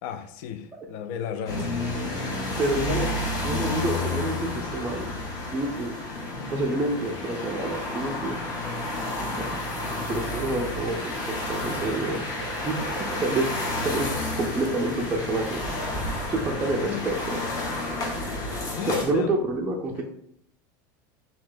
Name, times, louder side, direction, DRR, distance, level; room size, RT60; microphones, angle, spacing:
voice 1, 0.0-1.7 2.9-3.3 16.5-17.1 18.3-19.3 19.9-20.0, left 9 dB, 55° left, 0.4 m, -34 dB
sound 1, 1.5-19.0, left 2 dB, 35° left, 0.9 m, -31 dB
voice 2, 2.6-3.1 3.4-5.1 5.5-5.9 6.5-8.4 9.4-9.5 10.0-13.5 13.8-14.1 14.4-15.6 16.3-17.4 18.9-20.0, right 2 dB, 15° right, 0.4 m, -28 dB
Bird / Rain, 10.5-18.7, right 7 dB, 70° right, 0.4 m, -44 dB
3.1 x 2.7 x 3.7 m
supercardioid pair, 155°, 11 cm